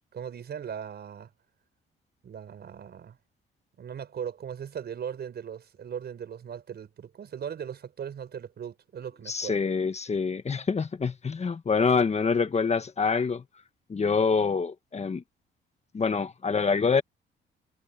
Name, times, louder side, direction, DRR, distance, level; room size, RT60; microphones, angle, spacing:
voice 1, 0.1-1.3 2.2-3.2 3.8-9.6, right 8 dB, 55° right, 5.3 m, -38 dB
voice 2, 9.3-13.4 13.9-15.2 15.9-17.0, left 5 dB, 35° left, 1.5 m, -26 dB
cardioid pair, 90°, 20 cm